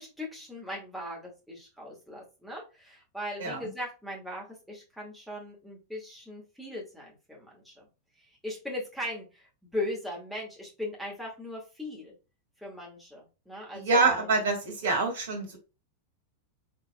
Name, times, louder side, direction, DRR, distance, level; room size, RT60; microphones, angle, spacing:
voice 1, 0.0-7.8 8.4-9.5 9.7-12.1 12.6-14.3, left 1 dB, ahead, -4 dB, 2.1 m, -39 dB
voice 2, 13.7-15.6, right 3 dB, 60° right, 2 dB, 1.7 m, -26 dB
4.3 x 3.9 x 2.3 m, 0.30 s
figure-of-eight pair, 90°, 0 cm